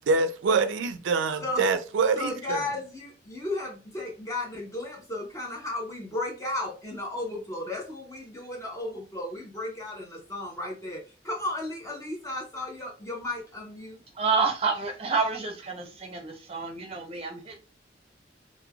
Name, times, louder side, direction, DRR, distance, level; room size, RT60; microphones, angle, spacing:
voice 1, 0.1-2.6, right 4 dB, 90° right, 0.4 m, -25 dB
voice 2, 2.1-14.0, left 2 dB, 15° left, 0.7 m, -34 dB
voice 3, 14.1-17.6, right 4 dB, 30° right, 0.6 m, -29 dB
3.1 x 2.2 x 2.3 m
head